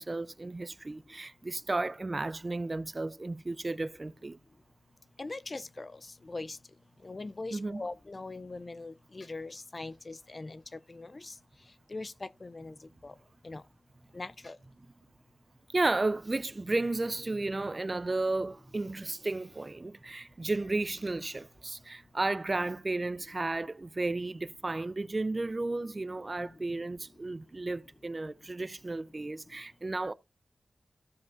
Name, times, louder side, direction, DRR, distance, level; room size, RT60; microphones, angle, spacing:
voice 1, 0.0-4.4 7.5-7.9 15.7-30.1, right 2 dB, 35° right, 0.4 m, -33 dB
voice 2, 5.2-5.9 6.3-6.6 7.0-10.6 10.9-11.3 11.9-12.7 13.0-13.1 13.4-13.6 14.1-14.6 26.4-26.5, left 3 dB, 40° left, 0.5 m, -41 dB
15.5 x 5.3 x 2.5 m
wide cardioid pair, 100°, 0 cm